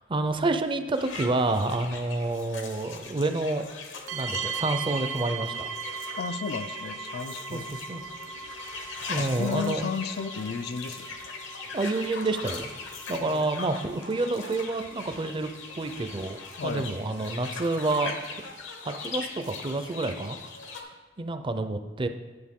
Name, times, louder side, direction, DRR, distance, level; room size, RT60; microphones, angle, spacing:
voice 1, 0.1-3.7 4.1-5.7 7.5-8.0 9.1-9.8 11.7-12.7 13.1-16.4 16.6-18.1 18.8-20.4 20.8-22.1, right 2 dB, 25° right, 8 dB, 0.5 m, -29 dB
sound 1, 0.9-20.8, left 4 dB, 75° left, 1.0 m, -40 dB
sound 2, 4.1-18.4, right 6 dB, 90° right, 0.5 m, -40 dB
voice 2, 6.2-7.9 9.2-11.1 13.1-13.5 16.6-17.0, left 6 dB, 60° left, 11 dB, 0.4 m, -34 dB
9.7 x 6.5 x 3.6 m, 1.3 s
head